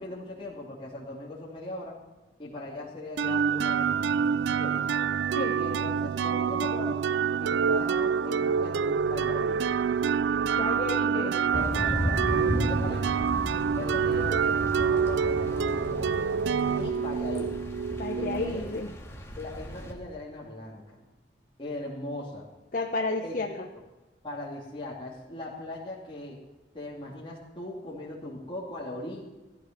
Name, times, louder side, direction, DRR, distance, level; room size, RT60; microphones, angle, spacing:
voice 1, 0.0-2.0 2.4-4.8 5.5-7.0 7.4-9.6 11.1-13.2 13.8-16.3 16.7-17.6 18.2-18.8 19.3-21.0 21.6-22.5 23.2-23.6 24.2-26.4 26.7-29.2, left 2 dB, 30° left, -6 dB, 2.8 m, -39 dB
sound 1, 3.2-18.8, right 6 dB, 85° right, 0.4 m, -27 dB
voice 2, 10.5-11.3 18.0-18.9 22.7-23.7, left 2 dB, 50° left, 1 dB, 1.1 m, -31 dB
Thunder / Rain, 11.5-19.9, equal, 15° left, 2.3 m, -35 dB
15.5 x 12.0 x 6.1 m, 1.1 s
head